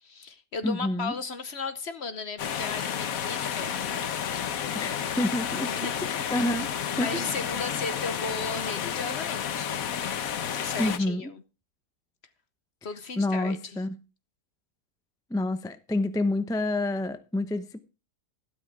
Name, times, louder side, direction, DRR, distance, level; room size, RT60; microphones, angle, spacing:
voice 1, 0.0-4.1 5.7-6.5 6.9-9.8 10.5-11.3 12.8-13.8, left 4 dB, 45° left, 1.0 m, -36 dB
voice 2, 0.6-1.1 4.7-5.7 6.0-6.7 7.0-7.2 10.8-11.3 13.2-14.0 15.3-17.8, left 1 dB, 5° left, 0.5 m, -28 dB
sound 1, 2.4-11.0, left 8 dB, 65° left, 1.3 m, -31 dB
12.5 x 12.5 x 3.5 m
omnidirectional pair, 1.7 m